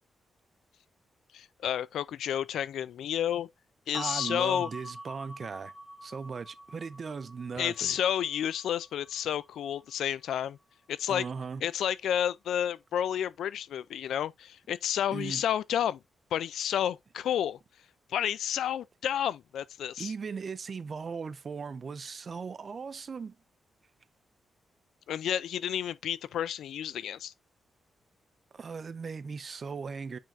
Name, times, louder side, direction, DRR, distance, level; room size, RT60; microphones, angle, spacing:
voice 1, 1.3-3.5 3.9-4.7 7.6-10.6 10.9-11.2 11.6-16.0 16.3-17.6 18.1-20.1 25.1-27.3, left 10 dB, 90° left, 0.5 m, -31 dB
sound 1, 3.9-10.2, equal, ahead, 1.0 m, -46 dB
voice 2, 3.9-5.7 6.0-8.0 11.1-11.6 15.1-15.4 20.0-23.3 28.5-30.2, right 5 dB, 40° right, 0.6 m, -38 dB
9.2 x 4.6 x 2.7 m
cardioid pair, 120°, 0 cm